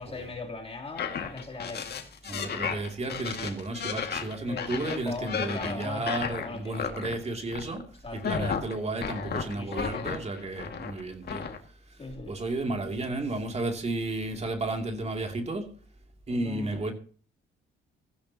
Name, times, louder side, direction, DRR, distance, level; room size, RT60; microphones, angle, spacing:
voice 1, 0.0-1.8 4.5-7.0 8.0-8.4 9.5-10.0 12.0-12.3 16.3-16.8, left 3 dB, 30° left, 3.3 m, -39 dB
sound 1, 1.0-7.2 7.5-7.9 8.2-11.0 11.3-11.6, left 6 dB, 55° left, 2.1 m, -33 dB
voice 2, 2.3-15.8 16.3-16.9, right 2 dB, 35° right, 2.8 m, -33 dB
15.5 x 14.0 x 2.9 m
cardioid pair, 90°, 20 cm